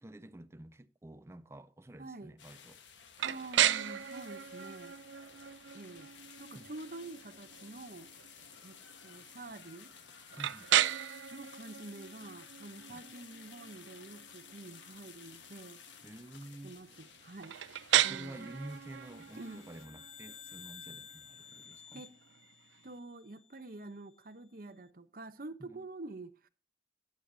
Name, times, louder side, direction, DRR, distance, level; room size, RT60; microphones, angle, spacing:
voice 1, 0.0-2.8 6.5-6.7 10.4-10.7 12.9-13.0 16.0-16.8 18.0-22.0 25.6-25.9, right 1 dB, 15° right, 0.5 m, -49 dB
voice 2, 2.0-2.3 3.2-4.9 5.7-6.1 6.4-8.1 8.6-9.9 11.3-15.8 16.6-17.6 18.0-18.5 19.4-19.6 21.9-22.1 22.8-26.5, right 2 dB, 50° right, 0.8 m, -47 dB
sound 1, 2.4-19.9, left 7 dB, 85° left, 1.4 m, -55 dB
sound 2, 3.2-22.9, right 12 dB, 85° right, 0.4 m, -36 dB
sound 3, 19.1-23.6, left 7 dB, 35° left, 0.5 m, -53 dB
15.0 x 9.6 x 2.7 m
head